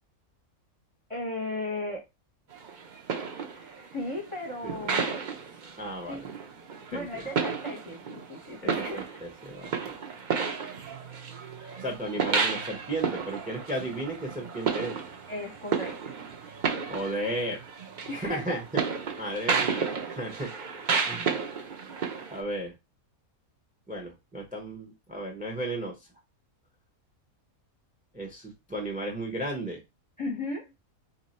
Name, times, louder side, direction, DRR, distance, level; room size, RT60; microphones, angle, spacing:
voice 1, 1.1-2.0 3.5-5.2 6.0-6.2 6.9-9.0 15.3-16.1 18.1-18.6 30.2-30.7, left 2 dB, 25° left, 0.8 m, -36 dB
sound 1, 2.5-22.4, right 5 dB, 50° right, 0.6 m, -33 dB
voice 2, 4.6-5.0 5.8-6.2 6.9-7.2 8.6-9.9 11.8-15.0 16.9-17.6 18.1-18.6 19.2-20.5 21.0-21.4 22.3-22.7 23.9-26.0 28.1-29.8, right 1 dB, 10° right, 0.6 m, -34 dB
2.9 x 2.7 x 4.2 m
omnidirectional pair, 1.5 m